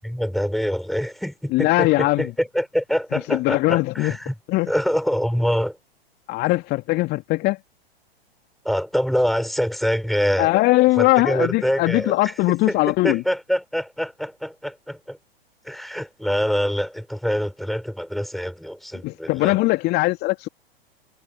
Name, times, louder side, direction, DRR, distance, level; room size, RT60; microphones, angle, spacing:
voice 1, 0.0-4.3 4.7-5.8 8.6-10.5 10.9-12.3 12.7-12.8 13.0-15.2 15.6-19.6, equal, ahead, 6.6 m, -25 dB
voice 2, 1.5-2.3 3.1-4.2 4.5-4.7 6.3-7.6 10.4-13.2 19.0-20.5, left 20 dB, 30° left, 2.7 m, -20 dB
figure-of-eight pair, 100°, 31 cm